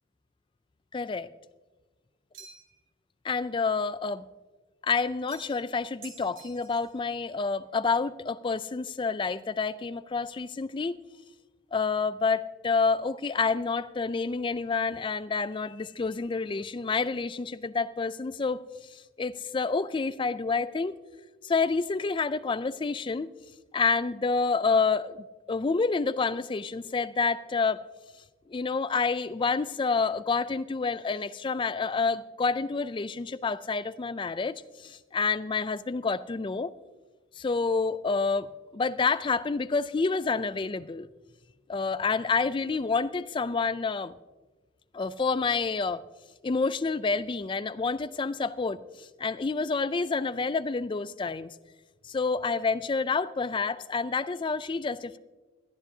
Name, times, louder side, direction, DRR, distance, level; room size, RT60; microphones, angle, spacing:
voice 1, 0.9-1.3 3.2-4.2 4.8-11.0 11.7-18.6 18.9-21.0 21.4-23.3 23.7-27.8 28.5-36.7 37.4-38.5 38.7-41.1 41.7-44.2 44.9-46.0 46.4-51.5 52.0-55.2, left 4 dB, 25° left, 0.3 m, -28 dB
sound 1, 2.3-2.8 5.3-5.7 6.0-7.0, right 5 dB, 75° right, 2.8 m, -49 dB
21.0 x 12.0 x 2.8 m
head